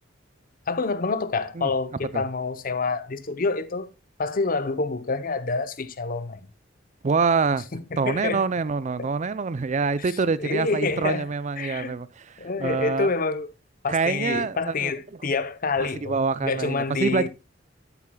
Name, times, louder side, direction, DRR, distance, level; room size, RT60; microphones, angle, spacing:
voice 1, 0.7-3.9 4.2-6.5 7.7-8.4 9.0-9.1 10.0-10.1 10.4-11.3 11.6-12.0 12.4-13.5 13.8-17.3, left 3 dB, 45° left, 0.8 m, -27 dB
voice 2, 7.0-7.7 8.0-13.1 13.9-14.9 16.0-17.3, right 4 dB, 40° right, 0.5 m, -25 dB
12.5 x 8.3 x 2.3 m
head